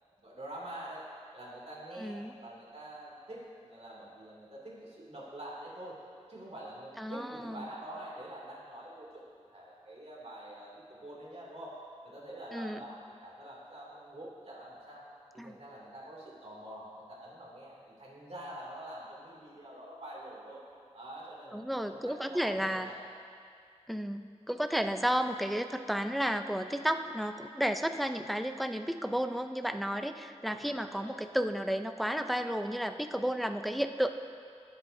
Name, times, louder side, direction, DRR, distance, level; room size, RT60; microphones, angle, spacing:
voice 1, 0.2-1.0 1.3-6.0 6.3-9.3 9.5-11.7 12.0-15.0 15.4-20.6 20.9-23.0 25.2-25.4 30.5-31.1, right 1 dB, 65° right, -5 dB, 2.6 m, -46 dB
voice 2, 2.0-2.3 7.0-7.7 12.5-12.8 15.4-15.6 21.5-22.9 23.9-34.1, equal, ahead, 7 dB, 0.5 m, -32 dB
23.5 x 7.8 x 2.7 m, 2.3 s
wide cardioid pair, 80°, 12 cm